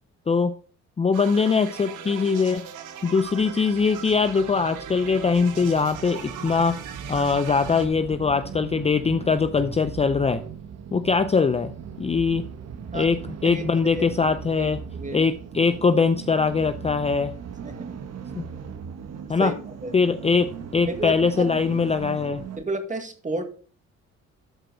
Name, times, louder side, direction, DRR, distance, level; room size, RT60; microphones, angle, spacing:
voice 1, 1.0-2.6 3.0-6.8 7.1-10.4 10.9-11.7 12.0-12.5 12.9-14.8 15.1-17.3 18.4-18.5 19.3-19.5 19.9-22.4, left 5 dB, 20° left, 11 dB, 0.5 m, -22 dB
sound 1, 1.1-7.9, right 8 dB, 90° right, 1.2 m, -39 dB
sound 2, 3.2-22.6, right 7 dB, 60° right, 1.2 m, -39 dB
voice 2, 14.6-15.3 17.6-17.9 19.4-19.5 19.8-19.9 20.8-21.5 22.6-23.4, right 2 dB, 25° right, 6 dB, 1.9 m, -31 dB
13.0 x 4.5 x 3.9 m, 0.41 s
cardioid pair, 90°, 30 cm